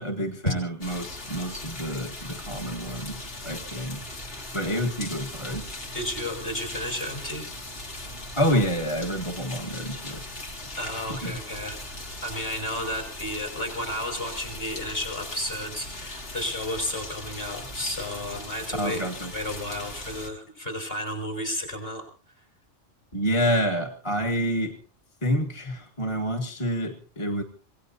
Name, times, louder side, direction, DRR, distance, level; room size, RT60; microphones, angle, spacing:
voice 1, 0.0-4.0 4.5-5.6 8.4-10.2 11.1-11.4 18.7-19.3 23.1-24.8 25.2-27.4, equal, 25° left, 1 dB, 1.5 m, -28 dB
sound 1, 0.8-20.3, left 1 dB, 70° left, 2.8 m, -39 dB
voice 2, 5.9-7.4 10.7-11.8 12.2-19.0 19.3-22.0 22.4-22.5, left 1 dB, 50° left, 2 dB, 6.4 m, -32 dB
26.5 x 17.5 x 2.8 m, 0.39 s
omnidirectional pair, 1.2 m